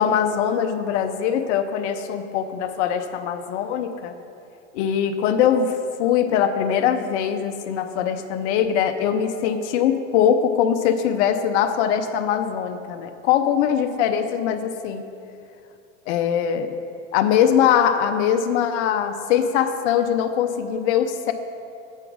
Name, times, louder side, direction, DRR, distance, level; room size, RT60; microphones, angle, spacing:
voice 1, 0.0-4.1 4.7-15.0 16.1-16.7 17.1-21.3, left 8 dB, 65° left, 7 dB, 0.7 m, -22 dB
7.9 x 5.6 x 6.1 m, 2.7 s
supercardioid pair, 125°, 37 cm